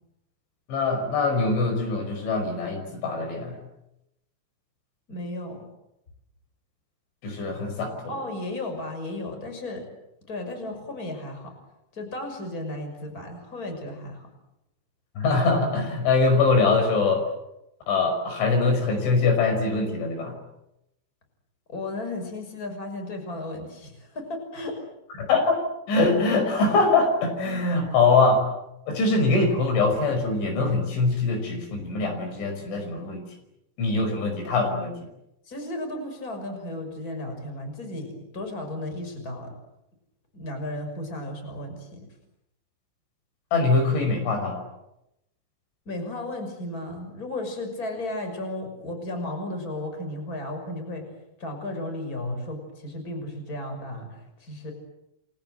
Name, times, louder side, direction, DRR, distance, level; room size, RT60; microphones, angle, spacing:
voice 1, 0.7-3.6 7.2-8.1 15.2-17.2 17.9-20.3 25.2-25.6 25.9-28.4 28.9-33.2 33.8-35.0 43.5-44.6, left 3 dB, 75° left, 6 dB, 7.7 m, -23 dB
voice 2, 5.1-5.6 8.1-9.9 10.3-11.5 11.9-14.3 21.7-24.8 35.4-39.5 40.3-42.1 45.9-51.1 51.4-54.7, left 1 dB, 20° left, 5 dB, 6.2 m, -34 dB
29.5 x 24.0 x 7.8 m, 0.86 s
omnidirectional pair, 5.5 m